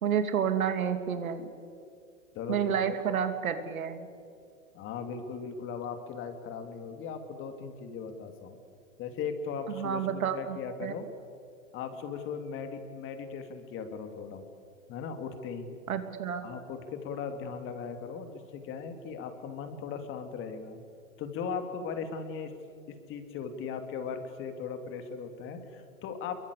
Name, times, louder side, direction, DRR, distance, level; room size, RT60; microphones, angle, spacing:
voice 1, 0.0-1.4 2.5-4.1 9.7-11.0 15.9-16.5, right 8 dB, 75° right, 9 dB, 2.9 m, -30 dB
voice 2, 2.3-3.0 4.7-8.6 9.0-11.1 11.7-14.4 14.9-15.7 16.4-20.8 21.2-22.5 22.9-26.4, left 6 dB, 30° left, 7 dB, 2.9 m, -38 dB
28.5 x 23.0 x 8.5 m, 2.3 s
hypercardioid pair, 135°, 42 cm